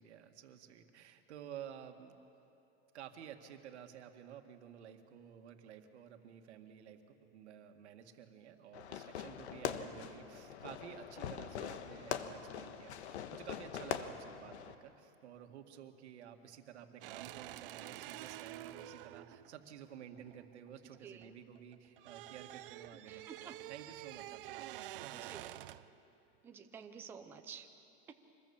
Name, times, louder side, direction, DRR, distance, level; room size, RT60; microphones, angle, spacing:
voice 1, 0.0-2.2 2.9-25.6, right 9 dB, 80° right, 6 dB, 2.0 m, -52 dB
Fireworks, 8.7-14.7, left 8 dB, 80° left, 1.3 m, -43 dB
sound 1, 17.0-21.3 21.6-26.0, right 15 dB, 55° right, 0.6 m, -48 dB
voice 2, 21.0-21.3 22.9-23.6 25.1-25.6 26.4-27.7 28.1-28.2, right 7 dB, 5° right, 5 dB, 0.5 m, -51 dB
25.5 x 21.0 x 7.2 m, 2.8 s
supercardioid pair, 170°, 33 cm